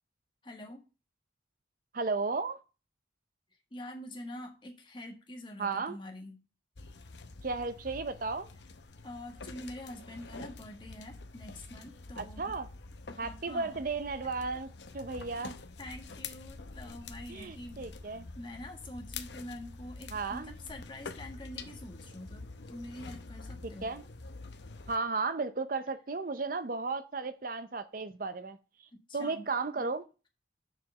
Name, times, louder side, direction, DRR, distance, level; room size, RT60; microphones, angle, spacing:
voice 1, 0.4-0.8 3.7-6.4 9.0-12.5 13.1-13.8 15.8-17.8 18.3-23.9 29.1-29.5 29.8-29.9, left 1 dB, 25° left, 1.6 m, -46 dB
voice 2, 1.9-2.6 5.6-6.0 7.4-8.5 12.2-12.7 13.2-14.7 14.9-15.5 17.3-18.3 20.1-20.5 23.8-24.0 24.9-28.6 29.1-30.0, right 4 dB, 45° right, 0.6 m, -34 dB
sound 1, 6.8-25.0, left 3 dB, 70° left, 0.8 m, -47 dB
6.6 x 5.0 x 6.5 m
head